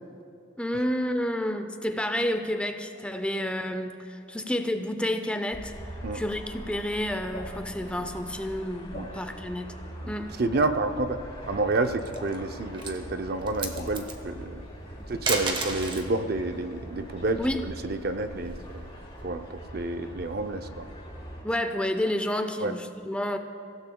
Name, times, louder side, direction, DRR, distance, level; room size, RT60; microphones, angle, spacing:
voice 1, 0.6-5.7 6.1-9.7 10.1-10.3 17.4-17.6 21.4-23.4, left 1 dB, 5° left, 7 dB, 0.5 m, -30 dB
sound 1, 5.5-21.4, equal, 30° left, 4.3 m, -42 dB
Drip, 7.3-7.6 8.9-9.2 10.5-10.8 12.1-12.4 13.7-14.0, left 1 dB, 65° left, 2.3 m, -40 dB
voice 2, 10.4-14.7 15.1-17.4 17.7-18.8 19.2-20.9 22.6-22.8, right 2 dB, 50° right, 8 dB, 0.6 m, -29 dB
sound 2, 11.9-12.4 12.7-13.0 13.4-14.2 15.1-16.1 17.6-18.8, right 3 dB, 25° right, 1.1 m, -32 dB
26.5 x 16.0 x 2.3 m, 2.5 s
head